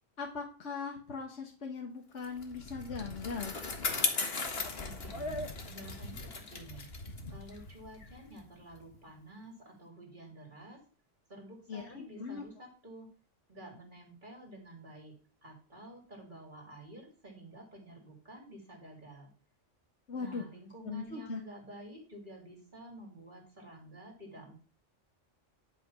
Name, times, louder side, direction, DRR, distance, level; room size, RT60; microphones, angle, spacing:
voice 1, 0.2-3.6 11.7-12.4 20.1-20.4 20.8-21.4, left 5 dB, 70° left, 1 dB, 1.6 m, -39 dB
Bicycle, 2.2-9.0, left 3 dB, 55° left, 1.8 m, -37 dB
voice 2, 4.8-5.3 5.7-6.9 7.3-10.8 11.3-13.1 13.5-19.3 20.2-24.5, right 1 dB, 40° right, 0 dB, 3.2 m, -50 dB
11.0 x 5.7 x 5.6 m, 0.39 s
omnidirectional pair, 1.2 m